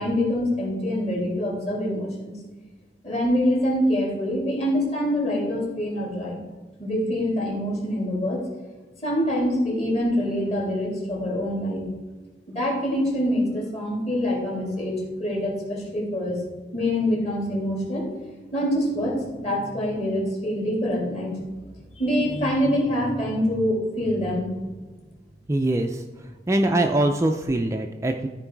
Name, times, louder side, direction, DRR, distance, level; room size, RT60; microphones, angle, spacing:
voice 1, 0.0-2.3 3.0-6.4 6.8-8.4 9.0-11.8 12.5-16.4 16.7-18.1 18.5-21.3 21.9-24.5, equal, 35° left, -3 dB, 2.9 m, -25 dB
voice 2, 25.5-26.0 26.5-28.3, right 1 dB, 15° right, 4 dB, 0.4 m, -23 dB
13.5 x 4.6 x 4.6 m, 1.3 s
head